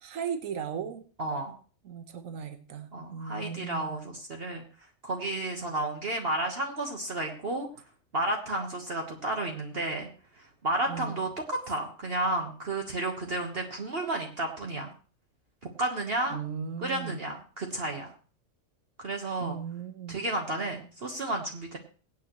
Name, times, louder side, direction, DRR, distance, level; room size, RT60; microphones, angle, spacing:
voice 1, 0.0-1.0 1.9-4.0 10.9-11.2 16.3-17.2 19.4-20.2, right 7 dB, 80° right, 8 dB, 1.4 m, -37 dB
voice 2, 1.2-1.5 2.9-4.6 5.0-7.7 8.1-10.1 10.4-14.9 15.8-16.4 16.8-18.1 19.0-19.6 20.1-21.8, right 2 dB, 50° right, 2 dB, 1.5 m, -32 dB
22.5 x 8.6 x 3.1 m, 0.39 s
omnidirectional pair, 1.3 m